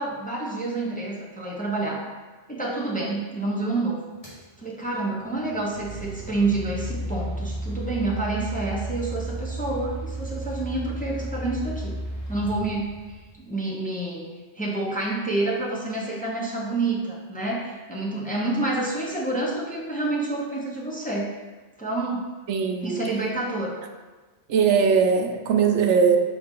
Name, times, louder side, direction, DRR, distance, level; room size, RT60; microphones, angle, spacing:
voice 1, 0.0-2.0 2.5-4.0 4.6-11.9 12.3-14.2 14.6-21.3 21.8-22.2 22.8-23.8, right 2 dB, 10° left, -3 dB, 0.7 m, -28 dB
sound 1, 4.2-4.4 5.3-13.3, right 1 dB, 30° left, 1.7 m, -33 dB
voice 2, 22.5-23.0 24.5-26.2, right 6 dB, 90° right, 4 dB, 1.0 m, -20 dB
5.4 x 4.7 x 3.7 m, 1.3 s
omnidirectional pair, 1.2 m